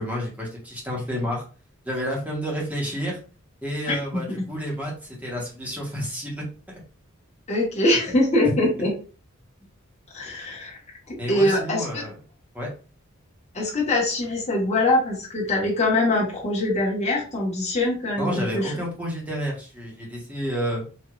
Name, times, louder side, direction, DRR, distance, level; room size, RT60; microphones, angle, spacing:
voice 1, 0.0-1.4 1.8-3.2 3.6-6.4 8.4-8.6 11.2-12.2 12.5-12.7 18.2-20.8, equal, 5° right, -3 dB, 1.2 m, -30 dB
voice 2, 3.9-4.2 7.5-8.9 10.1-10.8 11.1-12.0 13.5-18.7, left 1 dB, 30° left, -4 dB, 1.5 m, -23 dB
4.6 x 2.7 x 2.5 m, 0.37 s
head